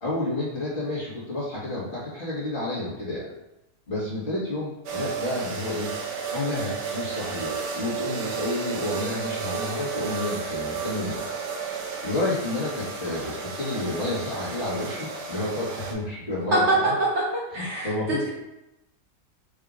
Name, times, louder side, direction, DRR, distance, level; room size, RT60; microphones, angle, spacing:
voice 1, 0.0-3.3 3.9-5.9 6.3-11.2 12.0-16.9 17.5-18.2, left 2 dB, 35° left, -8 dB, 1.5 m, -30 dB
sound 1, 4.9-15.9, right 5 dB, 75° right, 1.2 m, -33 dB
voice 2, 17.5-18.3, equal, 55° right, -4 dB, 0.9 m, -27 dB
5.0 x 2.7 x 3.6 m, 0.90 s
omnidirectional pair, 1.7 m